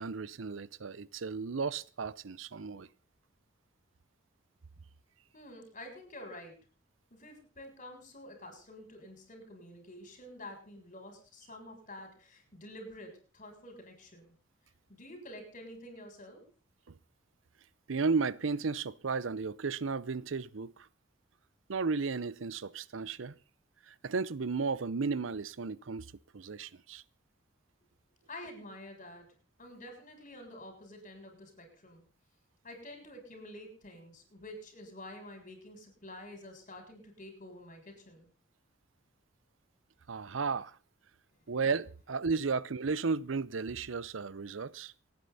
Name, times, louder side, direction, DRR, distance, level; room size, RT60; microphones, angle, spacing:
voice 1, 0.0-2.9 17.9-20.9 21.7-23.3 23.9-27.0 40.1-40.8 41.5-44.9, right 4 dB, 85° right, 0.7 m, -34 dB
voice 2, 5.3-6.6 7.1-14.3 14.9-16.5 28.3-29.3 29.6-32.0 32.6-38.3 41.3-41.4, left 1 dB, 40° left, 7.1 m, -49 dB
28.5 x 9.8 x 4.1 m
head